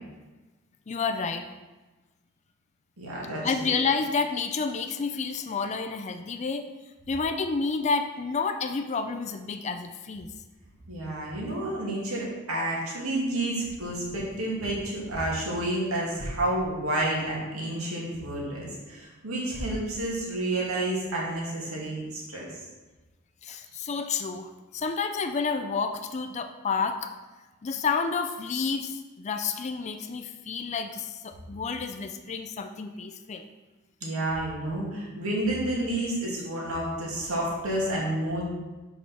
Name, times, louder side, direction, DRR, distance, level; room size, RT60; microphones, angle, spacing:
voice 1, 0.9-1.4 3.4-6.6 7.1-10.3 23.4-27.1 27.6-33.4, left 5 dB, 30° left, 7 dB, 0.4 m, -30 dB
voice 2, 3.0-3.7 10.9-22.5 34.0-38.4, right 1 dB, 85° right, -4 dB, 2.3 m, -30 dB
5.2 x 5.0 x 5.9 m, 1.2 s
head